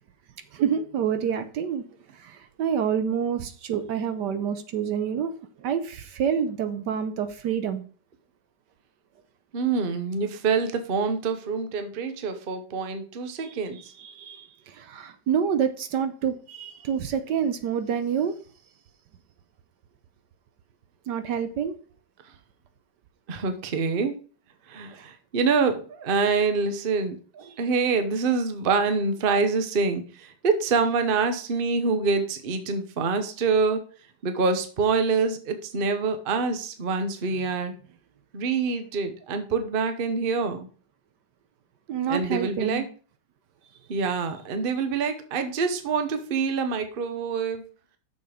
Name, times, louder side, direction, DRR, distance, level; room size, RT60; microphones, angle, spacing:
voice 1, 0.5-1.8 2.1-7.8 13.4-13.6 14.0-18.3 21.1-21.7 24.9-25.0 27.5-27.6 41.9-42.9, right 8 dB, 70° right, 10 dB, 1.3 m, -28 dB
voice 2, 9.5-13.8 23.3-24.1 24.7-27.2 27.6-33.8 34.2-37.7 38.3-40.7 42.1-42.8 43.9-47.6, right 4 dB, 40° right, 8 dB, 0.8 m, -26 dB
6.8 x 6.4 x 5.0 m, 0.40 s
omnidirectional pair, 2.0 m